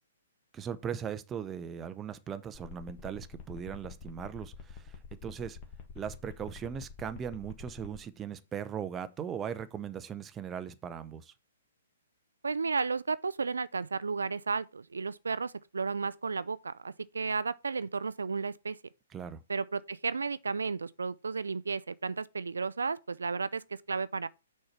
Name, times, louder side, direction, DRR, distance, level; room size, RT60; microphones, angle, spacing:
voice 1, 0.5-5.0 5.2-5.6 5.9-11.3 19.1-19.4, right 8 dB, 15° right, 0.7 m, -39 dB
sound 1, 2.5-8.0, left 6 dB, 30° left, 1.5 m, -46 dB
voice 2, 12.4-18.8 19.5-24.3, right 4 dB, 75° right, 0.4 m, -33 dB
6.4 x 4.4 x 5.9 m
figure-of-eight pair, 125°, 0 cm